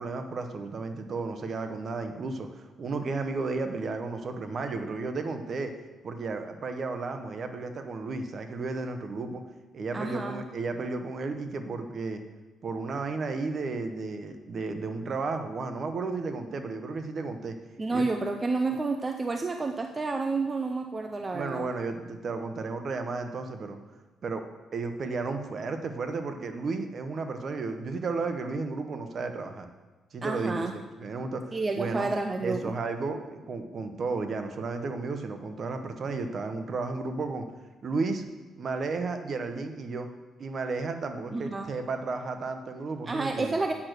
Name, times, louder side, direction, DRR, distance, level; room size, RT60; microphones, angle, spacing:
voice 1, 0.0-5.7 6.0-9.4 9.7-12.2 12.6-17.5 17.9-18.1 21.3-23.8 24.2-24.4 24.7-29.7 30.1-32.1 32.4-37.5 37.8-38.2 38.6-40.1 40.4-43.6, right 3 dB, 50° right, 7 dB, 1.0 m, -33 dB
voice 2, 9.9-10.4 17.8-21.7 30.2-30.7 31.5-32.7 41.3-41.7 43.1-43.7, right 3 dB, 25° right, 5 dB, 0.6 m, -30 dB
8.6 x 6.1 x 6.6 m, 1.2 s
cardioid pair, 90°, 0 cm